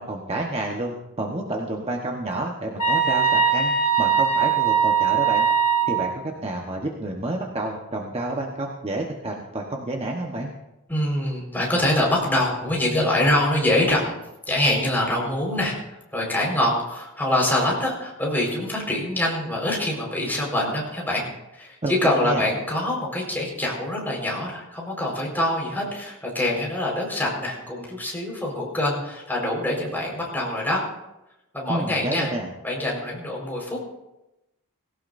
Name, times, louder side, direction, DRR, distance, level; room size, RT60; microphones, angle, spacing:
voice 1, 0.0-5.5 5.9-10.5 21.8-22.4 31.7-32.5, right 2 dB, 30° right, 0 dB, 1.1 m, -29 dB
sound 1, 2.8-6.1, right 7 dB, 85° left, 2.8 m, -20 dB
voice 2, 10.9-14.1 14.5-15.7 16.1-21.2 21.5-30.8 31.5-32.3 32.6-33.8, left 1 dB, 10° left, -3 dB, 4.6 m, -24 dB
19.0 x 17.0 x 2.6 m, 0.93 s
head